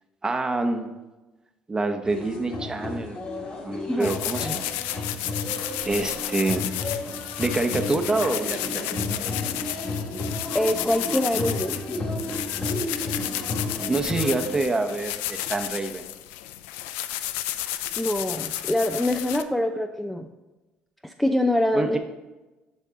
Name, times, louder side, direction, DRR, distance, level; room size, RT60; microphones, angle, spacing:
voice 1, 0.2-0.9 1.7-3.2 3.6-4.7 5.8-6.7 7.4-8.8 13.9-16.0 21.7-22.0, right 2 dB, 20° right, 6 dB, 0.8 m, -26 dB
sound 1, 2.0-14.6, left 2 dB, 45° left, 2.1 m, -32 dB
sound 2, 4.0-19.4, left 13 dB, 85° left, 0.4 m, -32 dB
voice 2, 10.5-12.0 18.0-20.3 21.0-22.0, left 1 dB, 5° left, 5 dB, 0.4 m, -25 dB
8.4 x 5.4 x 3.7 m, 1.1 s
supercardioid pair, 80°, 3 cm